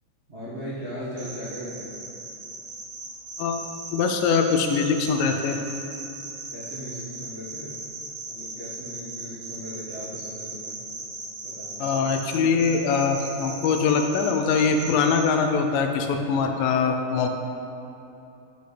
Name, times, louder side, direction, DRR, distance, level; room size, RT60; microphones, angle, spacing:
voice 1, 0.3-1.9 6.5-7.8 8.3-10.8 11.4-11.8, equal, 75° right, -11 dB, 0.6 m, -37 dB
sound 1, 1.2-15.2, right 3 dB, 50° right, 1.4 m, -37 dB
voice 2, 3.9-5.6 11.8-17.3, left 5 dB, 80° left, 5 dB, 2.1 m, -23 dB
8.0 x 7.9 x 3.3 m, 2.9 s
omnidirectional pair, 4.1 m